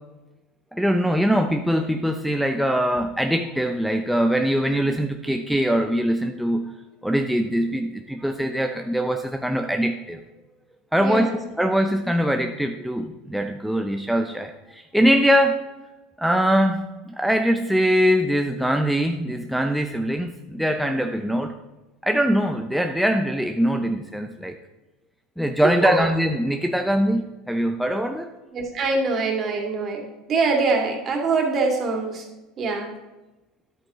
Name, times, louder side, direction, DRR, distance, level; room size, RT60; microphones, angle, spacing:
voice 1, 0.7-6.7 7.0-10.2 10.9-11.3 11.6-15.6 16.2-21.5 22.0-24.6 25.4-28.3, equal, ahead, 4 dB, 0.6 m, -22 dB
voice 2, 11.0-11.5 25.6-26.1 28.5-32.3 32.6-32.9, right 3 dB, 40° right, 1 dB, 2.5 m, -24 dB
10.5 x 8.5 x 3.1 m, 1.1 s
hypercardioid pair, 85°, 0 cm